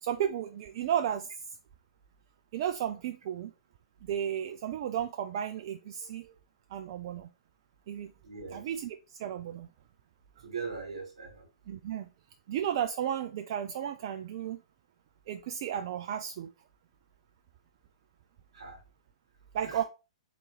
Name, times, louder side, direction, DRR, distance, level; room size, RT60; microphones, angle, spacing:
voice 1, 0.0-1.3 2.5-3.5 4.0-6.3 6.7-7.3 7.9-8.1 8.5-9.7 11.7-12.1 12.5-14.6 15.3-16.5 19.5-19.8, right 9 dB, 50° right, 0.4 m, -33 dB
voice 2, 8.2-8.7 10.4-11.5 18.5-18.8 19.6-19.8, right 5 dB, 75° right, 1.5 m, -40 dB
4.0 x 3.0 x 3.8 m
figure-of-eight pair, 115°, 3 cm